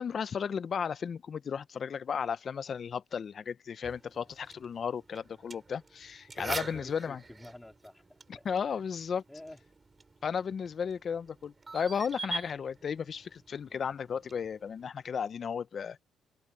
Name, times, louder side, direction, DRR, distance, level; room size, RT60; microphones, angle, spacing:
voice 1, 0.0-7.2 8.3-9.2 10.2-16.0, left 7 dB, 50° left, 0.6 m, -34 dB
sound 1, 3.8-14.9, right 3 dB, 25° right, 4.9 m, -45 dB
voice 2, 6.6-8.8 9.3-9.6, left 1 dB, 10° left, 3.8 m, -50 dB
cardioid pair, 90°, 0 cm